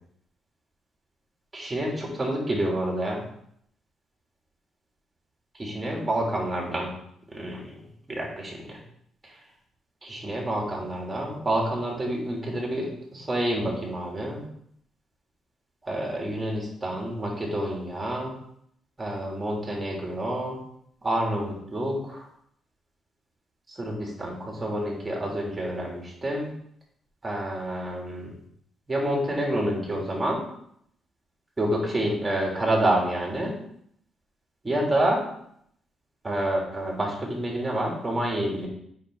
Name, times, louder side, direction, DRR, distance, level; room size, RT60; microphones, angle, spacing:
voice 1, 1.5-3.2 5.6-6.9 7.3-7.6 8.1-8.8 10.0-14.5 15.8-18.3 19.0-20.6 21.0-22.2 23.8-26.5 27.2-28.3 28.9-30.4 31.6-33.5 34.6-35.2 36.2-38.7, right 1 dB, 20° right, -2 dB, 3.2 m, -28 dB
8.3 x 5.8 x 4.1 m, 0.70 s
cardioid pair, 90°, 0 cm